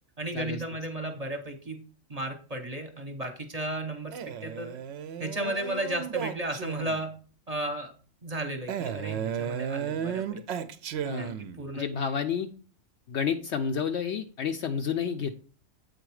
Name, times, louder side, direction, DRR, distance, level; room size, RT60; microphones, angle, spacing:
voice 1, 0.2-1.8 2.1-4.8 5.2-7.1 7.5-7.9 8.2-10.4 11.2-11.8, right 1 dB, 30° right, 5 dB, 1.0 m, -34 dB
Male speech man speaking, 4.1-7.1 8.7-11.7, right 8 dB, 65° right, 0.8 m, -34 dB
voice 2, 11.7-12.5 13.1-15.4, left 7 dB, 65° left, 6 dB, 0.8 m, -30 dB
8.0 x 4.0 x 4.7 m, 0.40 s
omnidirectional pair, 1.3 m